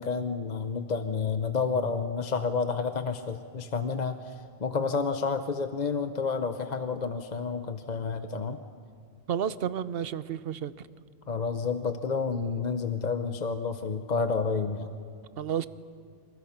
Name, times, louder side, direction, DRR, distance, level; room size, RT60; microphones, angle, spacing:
voice 1, 0.0-4.2 4.6-8.6 11.3-14.9, left 5 dB, 45° left, 8 dB, 0.9 m, -30 dB
voice 2, 9.3-10.7 15.4-15.7, right 9 dB, 70° right, 15 dB, 1.0 m, -31 dB
27.5 x 27.0 x 5.9 m, 2.2 s
omnidirectional pair, 1.0 m